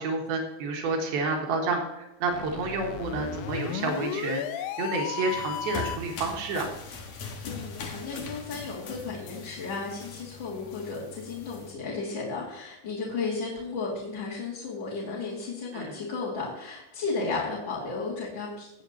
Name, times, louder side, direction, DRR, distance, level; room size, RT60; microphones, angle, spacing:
voice 1, 0.0-6.7 15.7-16.0, right 3 dB, 85° right, 1 dB, 3.5 m, -30 dB
sound 1, 2.2-6.2, left 11 dB, 80° left, 2.4 m, -34 dB
sound 2, 5.3-11.7, left 4 dB, 60° left, 2.2 m, -41 dB
voice 2, 7.4-18.8, left 4 dB, 35° left, -8 dB, 2.6 m, -34 dB
18.0 x 7.9 x 2.9 m, 0.92 s
omnidirectional pair, 4.3 m